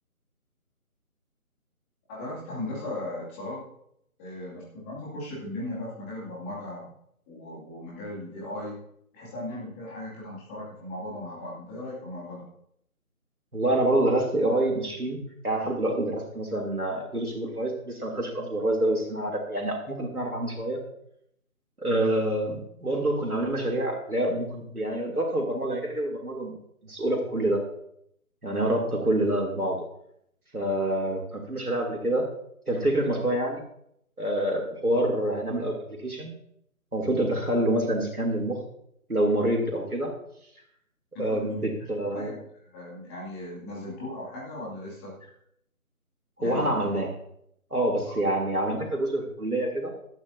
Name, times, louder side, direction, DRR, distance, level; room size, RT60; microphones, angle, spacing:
voice 1, 2.1-3.6 4.2-6.9 7.3-8.8 9.1-12.5 41.1-45.1 46.4-46.9 48.1-48.2, left 1 dB, 10° left, -6 dB, 2.6 m, -37 dB
voice 2, 13.5-15.2 15.4-20.8 21.8-26.5 26.8-27.6 28.4-29.8 30.5-32.3 32.7-33.6 34.2-35.7 36.0-36.3 36.9-38.6 39.1-40.1 41.2-42.3 46.4-47.1 47.7-49.9, right 1 dB, 90° right, -1 dB, 3.2 m, -27 dB
16.0 x 12.5 x 2.8 m, 0.72 s
figure-of-eight pair, 155°, 43 cm